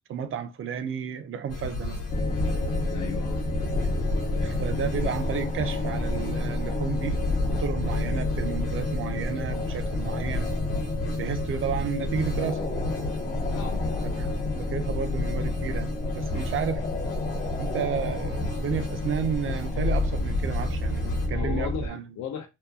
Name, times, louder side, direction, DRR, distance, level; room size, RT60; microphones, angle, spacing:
voice 1, 0.1-2.0 4.4-7.2 7.5-10.5 11.1-12.6 14.0-16.8 17.6-22.0, right 7 dB, 45° right, 0.5 m, -32 dB
sound 1, 1.5-21.3, left 1 dB, 50° left, 1.2 m, -34 dB
sound 2, 2.1-21.9, left 2 dB, 25° left, 0.5 m, -29 dB
voice 2, 2.9-3.4 13.5-13.8 21.3-22.5, left 8 dB, 70° left, 0.6 m, -35 dB
2.8 x 2.2 x 2.3 m
cardioid pair, 90°, 30 cm